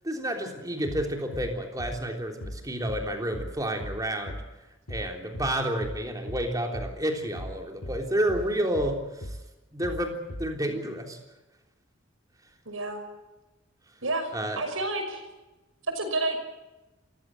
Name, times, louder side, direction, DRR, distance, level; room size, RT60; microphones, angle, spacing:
voice 1, 0.0-4.4 4.9-9.3 9.7-11.2 14.3-14.6, right 1 dB, 20° right, 3 dB, 3.5 m, -30 dB
sound 1, 0.9-1.1 1.3-1.5 1.8-2.0 2.4-2.6 2.9-3.1 3.3-3.5 3.8-4.0 4.3-4.5 4.9-5.1 5.3-5.5 5.8-6.0 6.3-6.5 6.7-6.9 7.4-7.6 7.8-8.0 8.3-8.5 8.7-8.9 9.2-9.4 9.8-10.0 10.3-10.5, equal, 90° left, 1.9 m, -37 dB
voice 2, 12.6-13.1 14.0-15.2 15.9-16.4, right 2 dB, 80° right, 5 dB, 5.9 m, -30 dB
28.0 x 16.0 x 7.7 m, 1.1 s
head